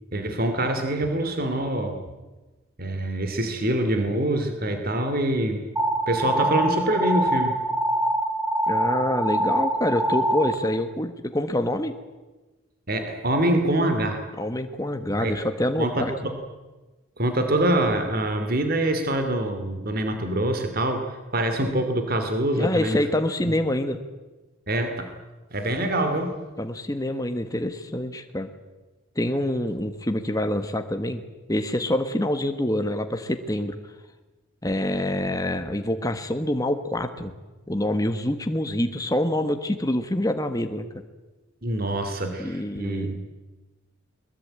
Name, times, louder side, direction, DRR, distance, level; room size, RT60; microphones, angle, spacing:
voice 1, 0.1-2.0 2.8-5.7 6.1-7.6 12.9-14.2 15.1-15.4 15.8-16.3 17.2-23.0 24.7-25.1 25.5-26.4 41.6-43.2, right 1 dB, 45° right, 7 dB, 2.6 m, -25 dB
sound 1, 5.8-10.5, right 1 dB, 10° right, 2.3 m, -24 dB
voice 2, 8.7-11.9 14.4-16.1 22.6-24.0 26.6-28.5 29.1-31.2 31.5-33.8 34.6-37.3 37.7-40.9 42.4-43.2, left 1 dB, 15° left, 7 dB, 1.3 m, -26 dB
22.0 x 22.0 x 8.8 m, 1.2 s
head